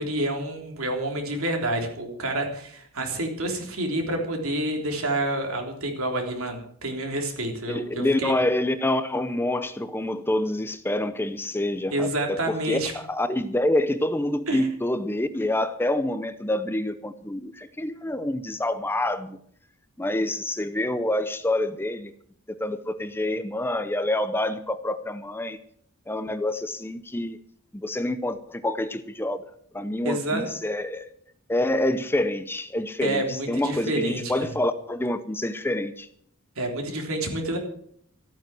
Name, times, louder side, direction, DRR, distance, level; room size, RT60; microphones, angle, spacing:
voice 1, 0.0-8.3 11.9-12.9 14.5-14.6 30.0-30.5 33.0-34.3 36.5-37.6, right 1 dB, 70° right, 3 dB, 3.5 m, -28 dB
voice 2, 7.7-19.4 20.0-22.1 22.6-25.6 26.1-27.4 27.7-31.1 31.5-36.1, left 1 dB, 10° left, 12 dB, 0.6 m, -27 dB
14.0 x 9.1 x 7.6 m, 0.65 s
head